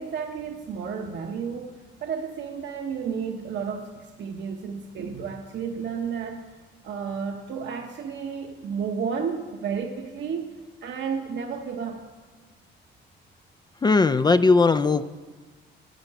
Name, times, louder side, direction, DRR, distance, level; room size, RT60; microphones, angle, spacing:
voice 1, 0.0-6.5 6.8-10.5 10.8-12.0, right 6 dB, 65° right, 2 dB, 1.0 m, -32 dB
voice 2, 13.8-15.0, left 4 dB, 20° left, 10 dB, 0.4 m, -18 dB
10.0 x 7.8 x 9.6 m, 1.4 s
cardioid pair, 90°, 20 cm